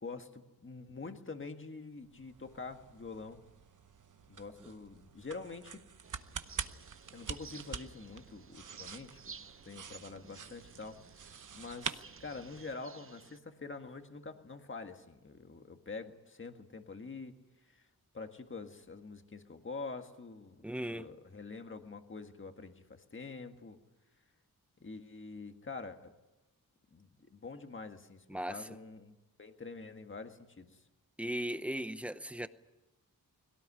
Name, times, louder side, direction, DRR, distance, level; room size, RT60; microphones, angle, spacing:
voice 1, 0.0-3.4 4.3-5.8 7.1-9.2 9.6-11.0 11.5-17.4 17.6-17.9 18.1-20.6 20.9-23.8 24.8-26.1 26.9-29.1 29.4-30.8, left 4 dB, 35° left, 1.7 m, -46 dB
sound 1, 2.0-12.8, right 6 dB, 55° right, 1.0 m, -46 dB
sound 2, 6.0-13.4, right 5 dB, 35° right, 0.7 m, -54 dB
voice 2, 20.6-21.1 28.3-28.7 31.2-32.5, equal, 5° right, 0.8 m, -37 dB
22.0 x 17.5 x 9.9 m
wide cardioid pair, 170°, 37 cm